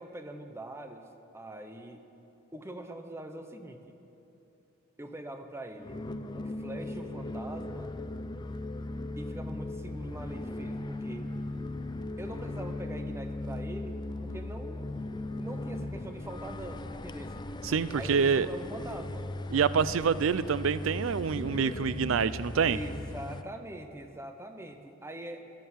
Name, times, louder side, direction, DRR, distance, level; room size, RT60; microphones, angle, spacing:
voice 1, 0.0-2.1 2.5-4.0 5.0-6.0 6.3-7.9 9.2-11.3 12.2-14.8 15.4-17.5 17.9-19.3 22.7-25.5, right 1 dB, 15° right, 6 dB, 0.9 m, -43 dB
sound 1, 5.8-23.4, left 2 dB, 20° left, 0.5 m, -38 dB
voice 2, 17.6-18.5 19.5-22.8, right 6 dB, 85° right, 16 dB, 0.5 m, -26 dB
15.5 x 10.5 x 7.3 m, 2.9 s
head